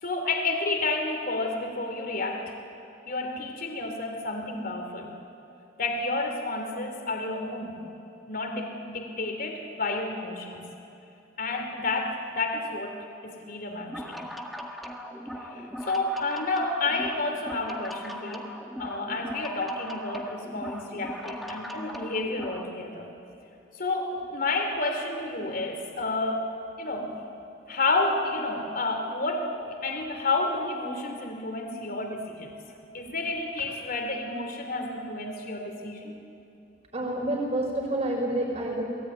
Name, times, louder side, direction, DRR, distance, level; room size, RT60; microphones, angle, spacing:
voice 1, 0.0-2.5 3.1-5.1 5.8-7.8 8.3-10.6 11.4-14.2 15.4-18.5 18.8-23.1 23.7-26.5 26.8-27.1 27.7-32.6 32.9-36.2, left 2 dB, 50° left, 4 dB, 3.1 m, -30 dB
sound 1, 13.8-22.7, equal, ahead, 1.7 m, -39 dB
voice 2, 36.9-38.8, right 1 dB, 35° right, 0 dB, 6.1 m, -28 dB
28.0 x 19.5 x 9.6 m, 2.7 s
head